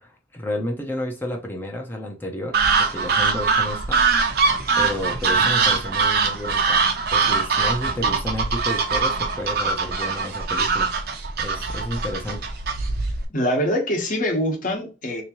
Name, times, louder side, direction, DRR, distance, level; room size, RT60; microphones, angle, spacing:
voice 1, 0.0-4.0 4.8-10.9 11.4-12.4, left 1 dB, 10° left, 0.7 m, -31 dB
sound 1, 2.5-13.3, right 4 dB, 50° right, 0.7 m, -22 dB
voice 2, 13.3-15.2, equal, 45° left, 1.2 m, -24 dB
3.5 x 3.0 x 3.0 m
head